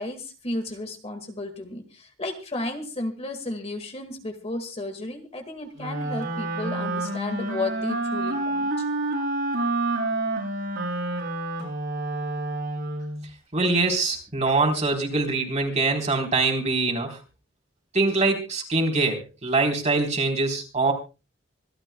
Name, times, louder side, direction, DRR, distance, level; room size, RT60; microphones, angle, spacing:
voice 1, 0.0-8.8, left 2 dB, 30° left, 6 dB, 1.9 m, -33 dB
Wind instrument woodwind instrument, 5.8-13.3, right 2 dB, 60° right, 6.9 m, -28 dB
voice 2, 13.5-17.2 17.9-20.9, right 3 dB, 35° right, 2 dB, 4.0 m, -23 dB
26.0 x 13.0 x 2.3 m, 0.31 s
head